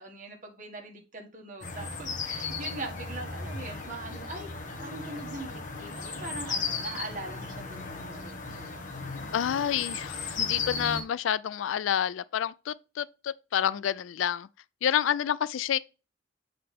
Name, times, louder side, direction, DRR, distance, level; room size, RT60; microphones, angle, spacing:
voice 1, 0.0-4.5 4.8-8.8, right 2 dB, 40° right, 1.6 m, -42 dB
sound 1, 1.6-11.0, left 4 dB, 40° left, 1.3 m, -36 dB
voice 2, 9.3-14.5 14.8-15.8, left 9 dB, 90° left, 0.3 m, -29 dB
7.6 x 4.0 x 3.5 m
head